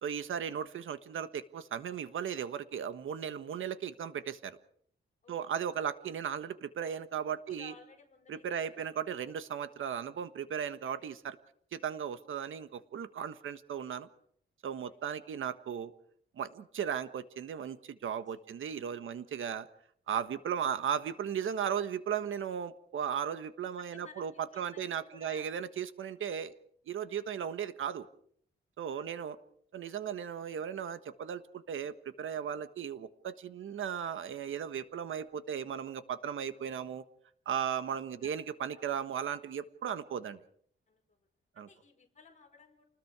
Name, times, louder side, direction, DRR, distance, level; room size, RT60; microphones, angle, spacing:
voice 1, 0.0-4.6 5.3-7.7 8.3-11.4 11.7-14.1 14.6-15.9 16.4-19.7 20.1-24.3 24.6-26.5 26.9-28.1 28.8-29.4 29.7-37.0 37.4-40.4 41.6-41.7, right 8 dB, 85° right, 11 dB, 1.4 m, -36 dB
voice 2, 7.5-8.9 9.2-9.3 14.9-15.0 18.3-18.5 18.9-19.2 23.8-25.4 27.1-27.4 28.9-29.3 38.2-38.3 38.7-38.8 40.9-41.2 41.5-42.8, left 4 dB, 35° left, 2 dB, 5.1 m, -57 dB
29.5 x 20.0 x 4.9 m, 0.62 s
wide cardioid pair, 150°, 20 cm